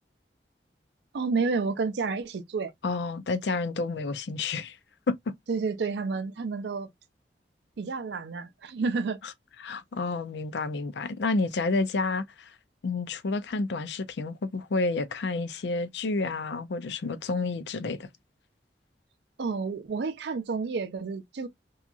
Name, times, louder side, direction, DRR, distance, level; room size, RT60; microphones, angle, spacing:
voice 1, 1.1-2.7 5.5-6.9 7.8-9.2 19.4-21.5, right 4 dB, 75° right, 0.4 m, -30 dB
voice 2, 2.8-4.8 5.1-5.3 9.6-12.5 12.8-18.1, left 3 dB, 75° left, 0.4 m, -30 dB
2.8 x 2.3 x 2.4 m
head